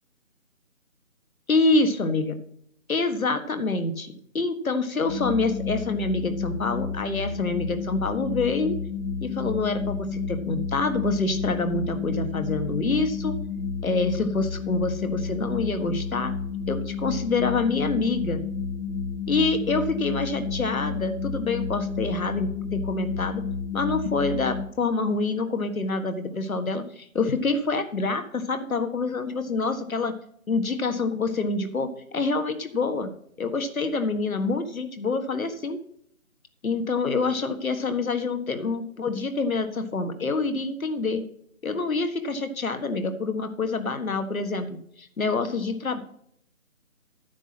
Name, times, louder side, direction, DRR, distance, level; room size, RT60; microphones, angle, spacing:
voice 1, 1.5-2.4 2.9-8.8 9.2-13.4 13.8-16.3 16.7-18.4 19.3-23.4 23.7-30.1 30.5-33.1 33.4-35.8 36.6-41.2 41.6-46.0, left 3 dB, 75° left, 8 dB, 1.7 m, -26 dB
sound 1, 5.1-24.6, left 5 dB, 60° left, 1.8 m, -31 dB
9.8 x 7.4 x 6.0 m, 0.68 s
figure-of-eight pair, 160°, 42 cm